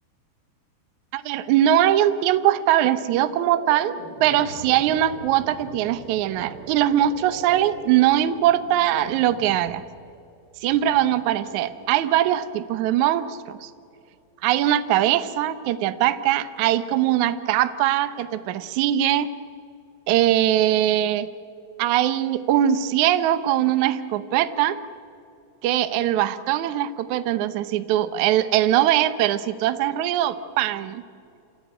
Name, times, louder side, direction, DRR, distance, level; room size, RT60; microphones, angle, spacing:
voice 1, 1.1-9.8 10.6-13.7 14.4-19.3 20.1-21.3 21.8-24.8 25.6-31.0, right 12 dB, 75° right, 12 dB, 1.8 m, -21 dB
sound 1, 2.8-13.9, right 2 dB, 35° right, 5.3 m, -43 dB
28.5 x 17.0 x 9.0 m, 2.4 s
omnidirectional pair, 4.4 m